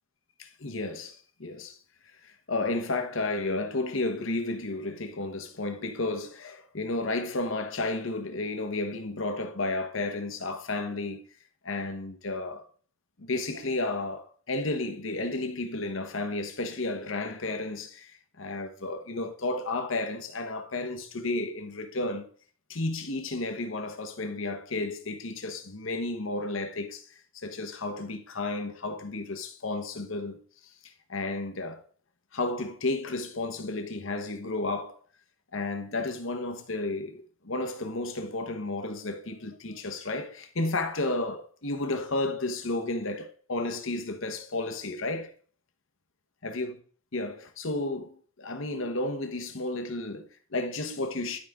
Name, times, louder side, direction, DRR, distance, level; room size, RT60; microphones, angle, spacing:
voice 1, 0.4-1.8 2.5-11.2 11.6-12.7 13.2-18.1 18.4-22.3 22.7-27.0 27.3-30.4 31.1-31.8 32.3-35.0 35.5-45.3 46.4-46.8 47.1-51.4, left 2 dB, 75° left, 1.2 m, -32 dB
12.0 x 5.1 x 3.6 m
head